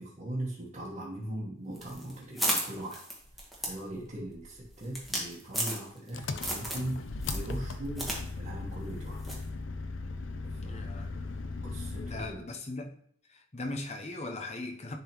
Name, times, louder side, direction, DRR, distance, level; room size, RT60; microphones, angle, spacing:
voice 1, 0.0-3.1 3.6-9.3 10.5-10.9 11.3-11.4 11.6-12.5, right 1 dB, 35° right, 1.3 m, -40 dB
sound 1, 1.8-6.1 6.4-6.9 7.2-8.2 8.5-8.6 9.2-9.5, right 1 dB, ahead, 1.3 m, -34 dB
Engine, 6.1-12.4, left 3 dB, 70° left, 0.6 m, -38 dB
voice 2, 10.7-11.1 12.0-13.0 13.3-15.0, left 2 dB, 35° left, 0.8 m, -39 dB
10.5 x 3.7 x 3.0 m
head